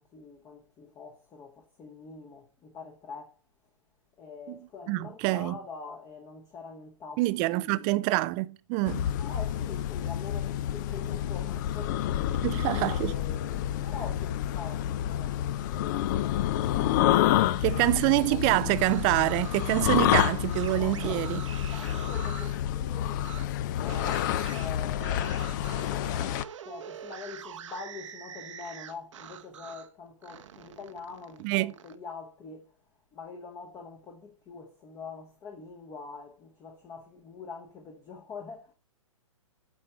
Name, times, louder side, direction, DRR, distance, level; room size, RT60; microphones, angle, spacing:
voice 1, 0.0-3.4 4.2-8.0 9.2-12.5 12.8-16.4 17.3-18.4 20.8-21.3 21.7-26.2 26.6-32.7 33.1-38.7, left 4 dB, 20° left, 0.9 m, -45 dB
voice 2, 4.9-5.6 7.2-9.1 12.4-13.2 17.6-21.4 31.4-31.7, right 20 dB, 25° right, 0.4 m, -26 dB
sound 1, 8.9-26.4, left 12 dB, 35° left, 0.4 m, -29 dB
sound 2, 18.6-22.6 23.2-23.4 23.9-29.9 30.2-31.9, right 9 dB, 65° right, 0.9 m, -45 dB
8.8 x 4.3 x 5.5 m
hypercardioid pair, 125°, 17 cm